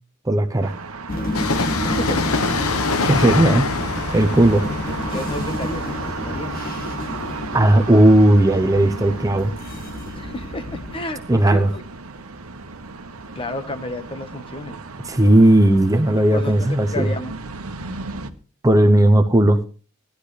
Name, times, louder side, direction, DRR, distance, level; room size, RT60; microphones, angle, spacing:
voice 1, 0.2-0.7 3.0-3.7 4.1-4.6 7.5-9.5 11.3-11.7 15.1-17.1 18.6-19.6, right 1 dB, 15° right, 6 dB, 0.8 m, -15 dB
sound 1, 0.6-18.3, right 4 dB, 85° right, 1.2 m, -35 dB
sound 2, 1.1-11.0, left 1 dB, 45° left, 2.3 m, -30 dB
Train, 1.3-8.8 9.0-9.1, left 4 dB, 90° left, 1.2 m, -26 dB
voice 2, 1.8-2.8 4.1-4.4 5.1-6.6 10.2-11.8 13.3-14.8 16.3-17.3, left 1 dB, 25° left, 8 dB, 1.3 m, -32 dB
17.5 x 12.0 x 3.3 m, 0.35 s
head